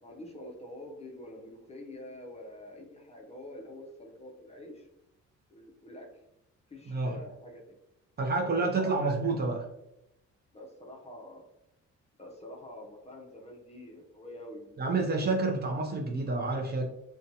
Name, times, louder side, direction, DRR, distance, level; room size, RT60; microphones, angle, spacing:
voice 1, 0.0-4.9 5.5-6.1 6.7-7.8 8.5-9.1 10.5-11.5 12.2-15.5, left 1 dB, 20° left, -1 dB, 0.6 m, -46 dB
voice 2, 6.9-7.2 8.2-9.6 14.8-16.9, right 3 dB, 35° right, 1 dB, 0.5 m, -29 dB
2.5 x 2.2 x 2.6 m, 0.86 s
cardioid pair, 90°, 30 cm